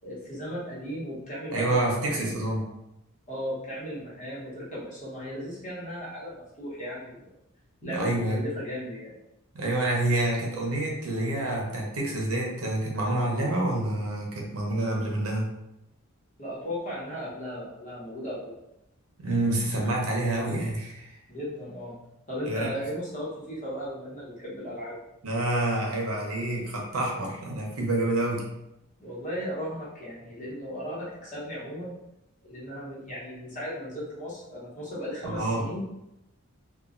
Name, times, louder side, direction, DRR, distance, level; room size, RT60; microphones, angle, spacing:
voice 1, 0.0-2.4 3.3-7.3 7.8-9.1 16.4-18.5 21.3-21.9 22.3-25.0 29.0-31.9 32.4-35.8, equal, 35° left, -7 dB, 1.0 m, -36 dB
voice 2, 1.5-2.7 7.8-8.4 9.5-15.5 19.2-21.1 22.5-22.7 25.2-28.5 35.2-35.6, right 1 dB, 75° right, -1 dB, 0.7 m, -28 dB
3.0 x 2.3 x 2.5 m, 0.88 s
head